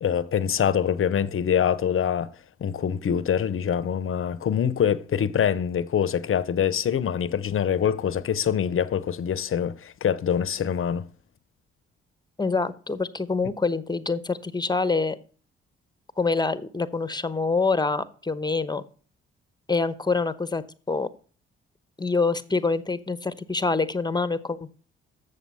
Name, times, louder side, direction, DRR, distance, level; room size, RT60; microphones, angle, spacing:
voice 1, 0.0-2.3 2.6-11.1, left 8 dB, 45° left, 0.8 m, -24 dB
voice 2, 12.4-15.2 16.2-18.8 19.7-21.1 22.0-24.7, left 3 dB, 15° left, 0.9 m, -26 dB
7.4 x 6.8 x 5.5 m
hypercardioid pair, 45°, 29 cm